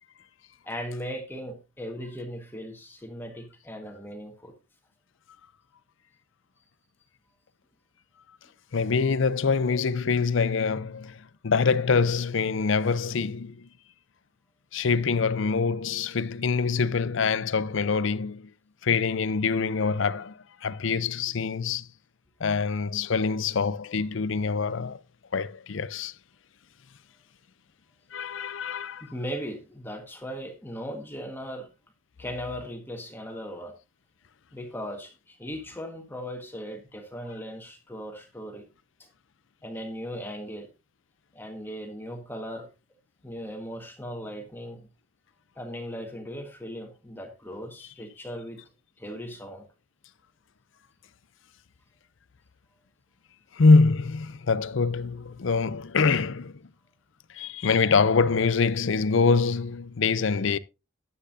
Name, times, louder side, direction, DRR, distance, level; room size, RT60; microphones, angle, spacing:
voice 1, 0.6-4.5 29.0-31.7 32.2-33.7 34.5-38.6 39.0-39.1 39.6-40.7 41.3-42.7 43.2-44.9 45.5-48.6 49.0-49.7, equal, 10° left, 1.5 m, -38 dB
voice 2, 8.7-13.7 14.7-18.5 18.8-21.9 22.4-25.0 25.3-26.1 28.1-29.1 47.8-47.9 53.5-56.5 57.3-60.6, left 4 dB, 70° left, 0.5 m, -24 dB
13.0 x 9.6 x 2.6 m
head